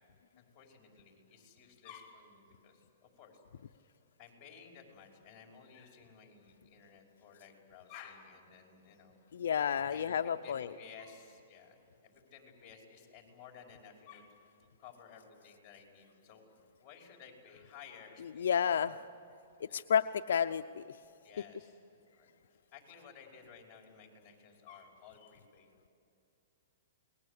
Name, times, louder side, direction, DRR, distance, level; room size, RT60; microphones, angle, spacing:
voice 1, 0.4-3.4 3.7-3.9 4.2-9.2 9.9-10.1 10.4-16.4 16.8-18.8 19.7-19.9 21.2-21.8 22.1-25.7, left 7 dB, 25° left, 2 dB, 5.5 m, -55 dB
voice 2, 9.3-10.7 18.4-19.0 19.7-21.0, left 8 dB, 75° left, 8 dB, 0.6 m, -31 dB
29.0 x 21.0 x 8.4 m, 2.7 s
hypercardioid pair, 150°, 0 cm